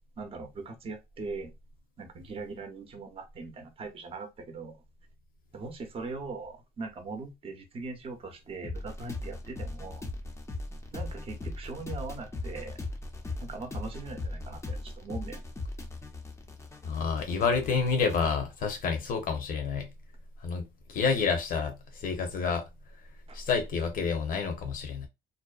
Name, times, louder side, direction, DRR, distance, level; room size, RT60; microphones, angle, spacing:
voice 1, 0.0-1.5 2.0-4.8 5.5-10.1 10.9-12.8 13.4-15.4 23.3-23.4, right 3 dB, 35° right, 0.6 m, -40 dB
sound 1, 8.6-18.3, left 2 dB, 15° left, 0.5 m, -39 dB
voice 2, 16.8-19.9 20.4-22.6 23.3-25.1, left 5 dB, 55° left, 0.8 m, -29 dB
2.6 x 2.0 x 2.3 m
cardioid pair, 110°, 17 cm